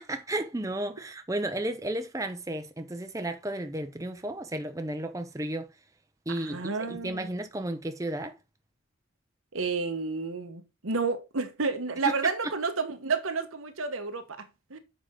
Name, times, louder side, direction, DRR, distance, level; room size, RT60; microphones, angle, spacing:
voice 1, 0.0-5.7 6.3-8.3 12.0-12.1, right 1 dB, 15° right, 0.6 m, -33 dB
voice 2, 6.3-7.3 9.5-14.8, right 4 dB, 85° right, 1.2 m, -31 dB
7.4 x 5.1 x 3.7 m
head